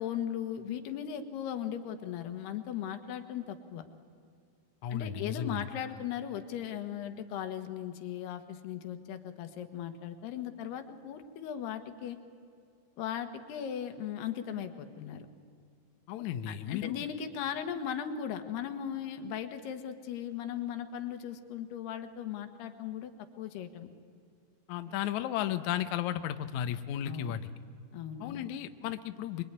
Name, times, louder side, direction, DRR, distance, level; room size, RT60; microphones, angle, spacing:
voice 1, 0.0-3.9 4.9-12.2 13.0-15.3 16.5-23.9 27.0-27.4 27.9-28.5, left 9 dB, 90° left, 7 dB, 3.5 m, -38 dB
voice 2, 4.8-5.7 16.1-17.0 24.7-27.4 28.2-29.4, left 10 dB, 70° left, 9 dB, 1.8 m, -34 dB
25.5 x 23.0 x 9.8 m, 2.3 s
omnidirectional pair, 4.5 m